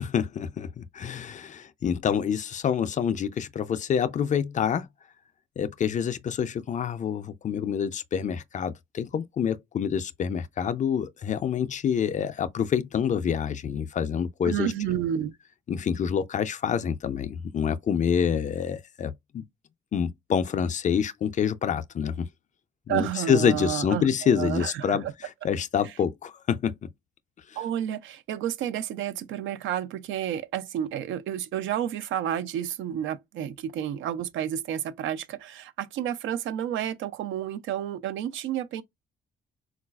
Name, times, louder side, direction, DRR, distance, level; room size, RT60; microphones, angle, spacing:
voice 1, 0.0-4.9 5.6-14.7 15.7-19.4 19.9-22.3 22.9-25.0 25.4-26.8, left 7 dB, 40° left, 0.4 m, -27 dB
voice 2, 14.4-15.3 22.9-25.1 27.6-38.8, right 10 dB, 80° right, 0.4 m, -30 dB
3.8 x 2.3 x 2.3 m
cardioid pair, 90°, 20 cm